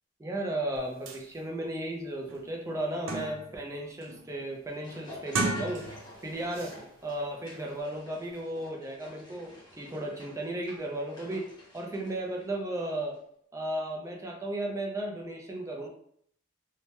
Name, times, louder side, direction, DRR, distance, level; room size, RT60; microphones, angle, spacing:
voice 1, 0.2-5.9 6.2-6.8 7.0-11.5 11.7-13.2 13.5-15.9, right 1 dB, 15° right, 0 dB, 0.4 m, -35 dB
sound 1, 0.7-0.8 1.1-1.2 1.8-1.9 2.3-3.6 4.0-4.4 5.2-6.2 6.5-6.8, right 3 dB, 90° right, 0.5 m, -34 dB
sound 2, 4.3-12.9 13.1-13.2, equal, 25° left, 0.8 m, -51 dB
2.8 x 2.1 x 3.1 m, 0.67 s
head